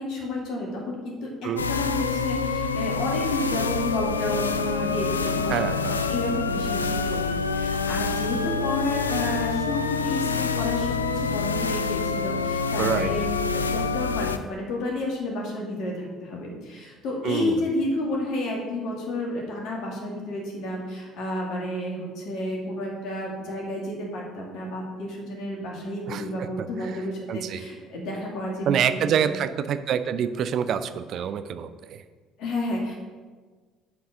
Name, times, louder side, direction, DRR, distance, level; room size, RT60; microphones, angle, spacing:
voice 1, 0.0-7.2 7.5-13.2 13.5-29.2 32.4-32.9, left 1 dB, 55° left, -1 dB, 2.3 m, -31 dB
sound 1, 1.6-14.4, left 5 dB, 85° left, 0.3 m, -27 dB
voice 2, 5.5-6.0 12.8-13.1 17.2-17.6 26.1-26.9 27.3-27.6 28.7-32.0, right 8 dB, 50° right, 11 dB, 0.5 m, -27 dB
8.2 x 4.7 x 6.4 m, 1.4 s
figure-of-eight pair, 55°, 0 cm